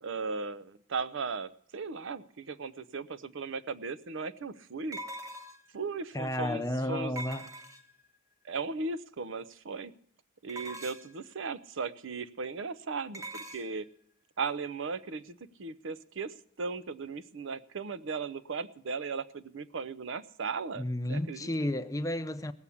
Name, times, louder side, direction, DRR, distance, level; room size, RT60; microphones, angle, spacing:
voice 1, 0.0-5.0 5.7-7.2 8.5-9.9 10.4-13.9 14.4-20.8 21.1-21.4, right 4 dB, 65° right, 0.6 m, -37 dB
sound 1, 3.3-3.4 4.9-5.8 7.2-8.1 10.5-11.2 13.1-13.7, right 1 dB, 15° right, 1.0 m, -42 dB
voice 2, 6.1-7.6 20.7-22.5, left 1 dB, 15° left, 0.6 m, -32 dB
17.5 x 7.1 x 8.4 m
head